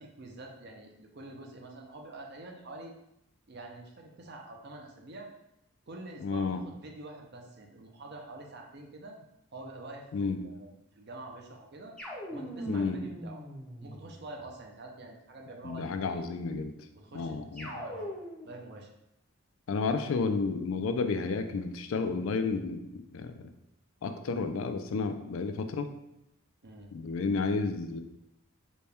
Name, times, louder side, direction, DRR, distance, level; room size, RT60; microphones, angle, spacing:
voice 1, 0.0-2.9 3.5-5.3 5.9-9.2 9.5-11.9 12.3-13.4 13.8-16.3 16.9-18.9 26.6-26.9, right 2 dB, 50° right, 1 dB, 0.6 m, -46 dB
voice 2, 6.2-6.6 10.1-10.4 12.7-13.0 15.6-16.7 17.1-17.7 19.7-23.3 24.0-25.9 26.9-28.0, left 4 dB, 70° left, 8 dB, 0.4 m, -31 dB
sound 1, 12.0-14.5 17.6-18.6, equal, 5° left, 0.6 m, -41 dB
4.1 x 2.2 x 3.4 m, 0.83 s
head